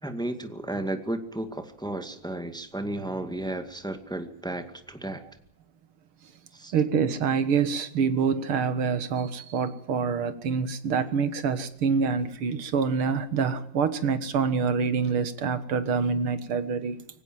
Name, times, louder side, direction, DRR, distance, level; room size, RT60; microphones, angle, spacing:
voice 1, 0.0-5.2 6.5-6.7, right 1 dB, ahead, 7 dB, 1.8 m, -33 dB
voice 2, 6.7-17.0, right 6 dB, 90° right, 12 dB, 2.5 m, -26 dB
25.0 x 16.5 x 7.7 m, 0.69 s
omnidirectional pair, 2.3 m